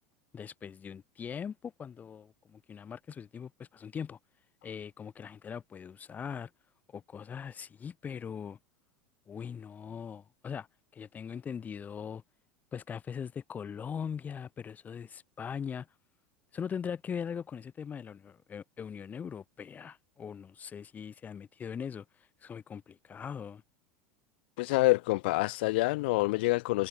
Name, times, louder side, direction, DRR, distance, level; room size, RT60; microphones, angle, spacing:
voice 1, 0.3-4.2 4.6-6.5 6.9-8.6 9.3-10.7 10.9-12.2 12.7-15.9 16.5-23.6, left 7 dB, 30° left, 4.1 m, -40 dB
voice 2, 24.6-26.9, left 22 dB, 70° left, 0.4 m, -27 dB
hypercardioid pair, 95°, 6 cm